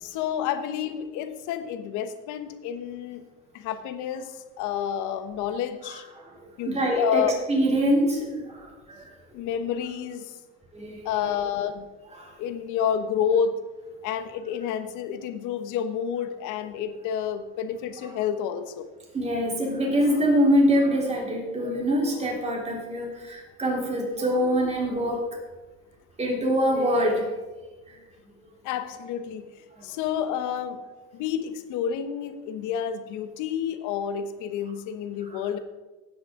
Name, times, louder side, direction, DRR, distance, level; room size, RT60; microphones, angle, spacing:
voice 1, 0.0-3.2 3.5-6.0 6.6-7.4 9.3-10.3 11.0-11.9 12.4-13.6 14.0-18.9 28.6-29.4 29.8-30.8 31.1-35.6, left 8 dB, 65° left, 10 dB, 1.1 m, -29 dB
voice 2, 6.4-9.1 10.7-11.1 12.2-12.3 19.1-25.3 26.2-27.3 29.8-29.9 35.3-35.4, equal, 20° right, -2 dB, 3.4 m, -24 dB
16.5 x 6.3 x 3.8 m, 1.2 s
supercardioid pair, 110°, 33 cm